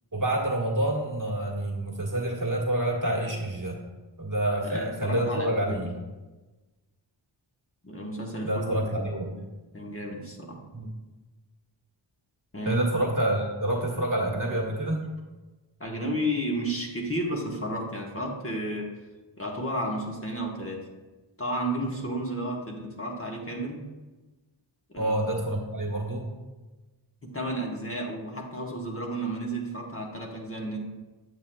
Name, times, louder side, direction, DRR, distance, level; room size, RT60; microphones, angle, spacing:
voice 1, 0.1-3.8 4.2-5.9 8.4-9.3 10.7-10.9 12.6-15.1 25.0-26.3, right 1 dB, 40° right, -1 dB, 1.4 m, -27 dB
voice 2, 4.6-5.8 7.8-9.4 9.7-10.6 12.5-12.8 15.8-18.9 19.4-20.8 21.4-23.8 24.9-25.1 25.5-25.6 27.2-30.8, right 1 dB, 30° left, -1 dB, 1.2 m, -32 dB
8.0 x 7.3 x 2.2 m, 1.2 s
wide cardioid pair, 55°, 47 cm